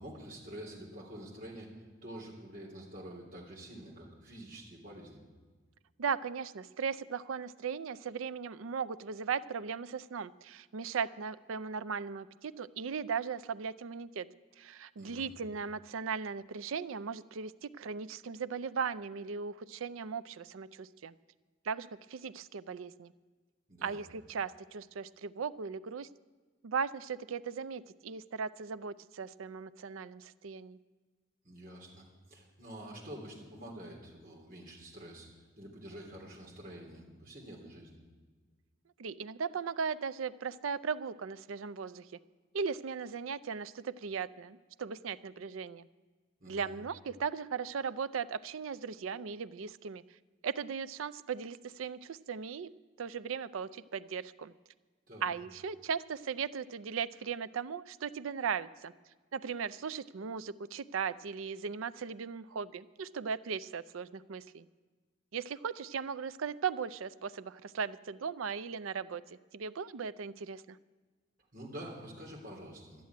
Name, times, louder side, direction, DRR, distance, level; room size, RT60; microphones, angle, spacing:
voice 1, 0.0-5.2 15.0-15.3 23.7-24.0 31.4-38.0 46.4-46.7 55.1-55.3 71.5-73.1, right 1 dB, 45° right, -1 dB, 3.2 m, -47 dB
voice 2, 6.0-14.3 14.6-21.1 21.7-23.1 23.8-26.1 26.6-30.8 39.0-42.1 42.5-45.9 46.5-50.0 50.4-52.7 53.0-54.5 55.2-58.9 59.3-64.7 65.3-69.2 69.5-70.8, right 6 dB, 85° right, 16 dB, 0.5 m, -37 dB
12.5 x 7.6 x 9.4 m, 1.4 s
head